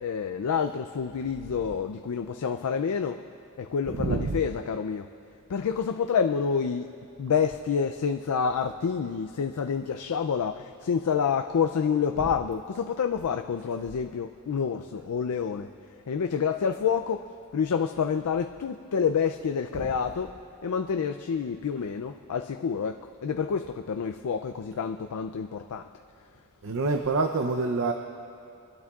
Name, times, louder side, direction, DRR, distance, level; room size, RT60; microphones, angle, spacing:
voice 1, 0.0-3.2 3.7-5.0 5.5-6.8 7.2-10.5 10.9-15.7 16.1-17.2 17.5-20.3 20.6-22.9 23.2-25.8, left 6 dB, 85° left, 6 dB, 0.4 m, -28 dB
voice 2, 3.9-4.4 19.8-19.9 26.6-27.9, right 3 dB, 65° right, 5 dB, 0.6 m, -27 dB
24.0 x 12.0 x 2.4 m, 2.6 s
head